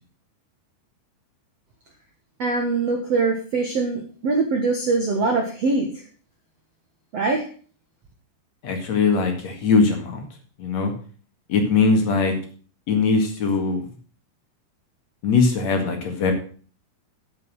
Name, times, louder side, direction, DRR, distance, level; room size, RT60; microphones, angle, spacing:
voice 1, 2.4-5.9 7.1-7.5, right 3 dB, 65° right, 1 dB, 1.6 m, -23 dB
voice 2, 8.6-10.2 10.6-10.9 11.5-12.3 12.9-13.8 15.2-16.3, left 4 dB, 50° left, 4 dB, 2.5 m, -20 dB
9.6 x 7.7 x 6.3 m, 0.41 s
omnidirectional pair, 5.1 m